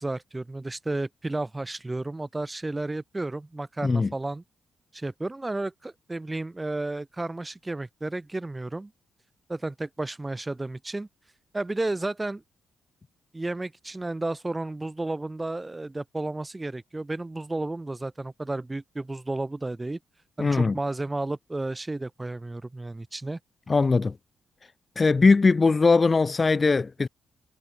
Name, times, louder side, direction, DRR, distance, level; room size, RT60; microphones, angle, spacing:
voice 1, 0.0-4.4 4.9-8.9 9.5-11.1 11.5-12.4 13.3-20.0 20.4-23.4, right 2 dB, 20° right, 3.8 m, -32 dB
voice 2, 20.4-20.7 23.7-24.1 25.0-27.1, left 4 dB, 35° left, 1.1 m, -20 dB
supercardioid pair, 50°, 0 cm